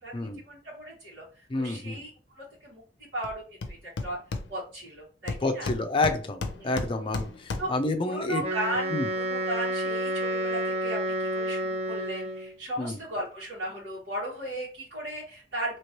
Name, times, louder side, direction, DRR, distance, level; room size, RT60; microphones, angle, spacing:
voice 1, 0.0-2.8 3.1-4.2 4.5-5.7 6.6-6.7 7.6-7.7 8.0-15.8, right 1 dB, 85° right, -8 dB, 1.7 m, -36 dB
voice 2, 1.5-2.0 5.4-8.4 8.9-9.1 12.8-13.0, left 2 dB, 30° left, 5 dB, 0.4 m, -29 dB
Hammer, 3.2-3.3 3.6-4.9 5.3-7.9, left 3 dB, 90° left, 0.5 m, -35 dB
Wind instrument woodwind instrument, 8.4-12.6, right 1 dB, 35° right, 0.7 m, -30 dB
3.0 x 3.0 x 2.9 m, 0.39 s
head